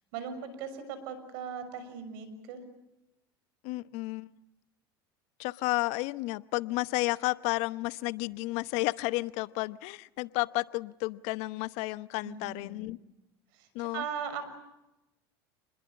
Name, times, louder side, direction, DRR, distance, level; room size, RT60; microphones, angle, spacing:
voice 1, 0.1-2.6 12.2-12.9 13.5-14.4, right 6 dB, 70° right, 11 dB, 6.3 m, -39 dB
voice 2, 3.6-4.3 5.4-13.0 13.7-14.0, left 21 dB, 65° left, 17 dB, 0.9 m, -32 dB
29.0 x 21.0 x 8.5 m, 0.97 s
hypercardioid pair, 90°, 13 cm